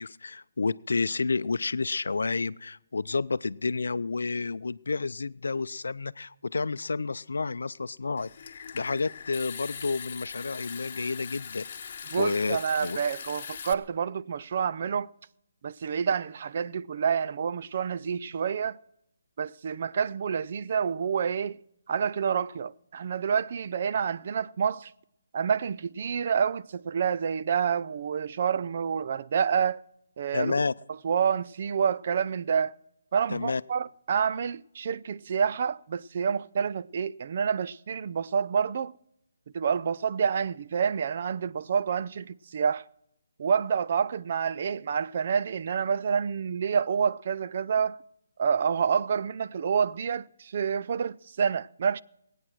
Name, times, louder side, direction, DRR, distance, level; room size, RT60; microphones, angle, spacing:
voice 1, 0.0-8.3 8.7-11.7 12.2-13.0 30.3-30.7 33.3-33.6, left 4 dB, 80° left, 0.5 m, -30 dB
Water tap faucet / Sink (filling or washing) / Trickle dribble, 8.2-13.7, left 6 dB, 45° left, 1.1 m, -41 dB
voice 2, 12.1-15.1 15.6-18.8 19.4-21.6 21.9-24.9 25.3-29.8 30.2-30.6 31.0-32.8 33.1-38.9 39.5-42.8 43.4-48.0 48.4-52.0, right 7 dB, 45° right, 0.4 m, -28 dB
21.5 x 9.1 x 6.2 m
hypercardioid pair, 160°, 0 cm